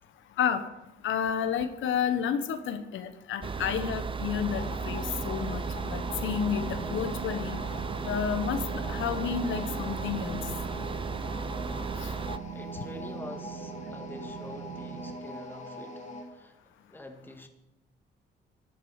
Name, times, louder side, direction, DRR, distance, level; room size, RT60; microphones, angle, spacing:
voice 1, 1.0-7.6 8.1-8.6 8.9-10.4 12.0-12.1, left 8 dB, 75° left, 10 dB, 1.0 m, -31 dB
sound 1, 3.4-12.4, right 5 dB, 25° right, 0.6 m, -35 dB
sound 2, 4.5-16.3, left 1 dB, 35° left, 2.9 m, -42 dB
sound 3, 5.6-15.1, right 9 dB, 70° right, 2.0 m, -43 dB
voice 2, 12.5-16.6 16.9-17.5, left 2 dB, 10° left, 5 dB, 1.9 m, -46 dB
11.5 x 11.5 x 4.9 m, 0.96 s
cardioid pair, 90°, 20 cm